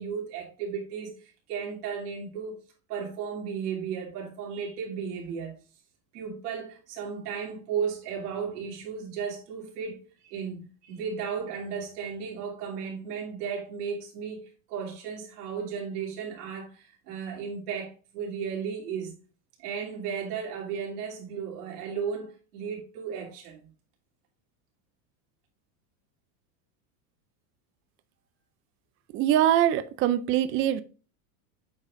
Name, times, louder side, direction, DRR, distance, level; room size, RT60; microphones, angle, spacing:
voice 1, 0.0-2.6 2.9-5.6 6.1-19.1 19.6-23.7, right 6 dB, 90° right, 3.1 m, -35 dB
voice 2, 29.1-30.8, right 11 dB, 30° right, 0.4 m, -23 dB
8.3 x 5.4 x 2.5 m
supercardioid pair, 135°, 45 cm